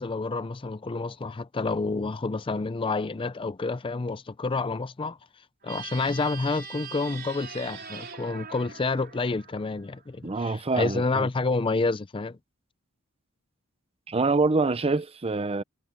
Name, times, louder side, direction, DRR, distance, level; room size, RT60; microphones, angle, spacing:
voice 1, 0.0-5.2 5.6-12.4, left 3 dB, 25° left, 0.5 m, -29 dB
sound 1, 5.6-10.1, right 6 dB, 50° right, 4.5 m, -42 dB
voice 2, 10.2-11.3 14.1-15.6, right 3 dB, 25° right, 0.7 m, -25 dB
head